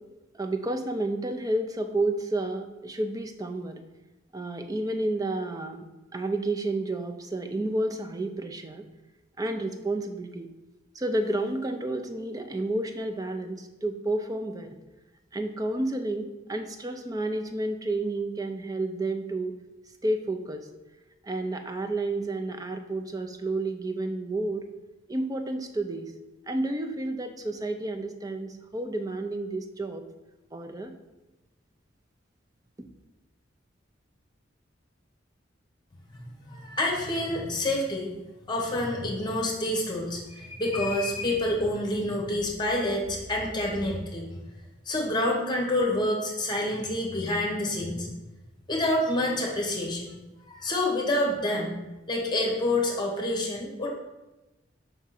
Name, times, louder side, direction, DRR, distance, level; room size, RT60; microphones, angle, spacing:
voice 1, 0.3-3.8 4.3-5.8 6.1-8.8 9.4-10.5 10.9-14.8 15.3-19.6 20.0-20.7 21.2-24.6 25.1-26.1 26.5-30.0 30.5-31.0, right 2 dB, 20° right, 5 dB, 0.5 m, -30 dB
voice 2, 36.5-38.1 38.5-44.3 44.9-48.1 48.7-50.1 50.5-51.8 52.1-53.9, left 1 dB, 25° left, 0 dB, 1.2 m, -27 dB
5.4 x 3.6 x 5.8 m, 1.1 s
head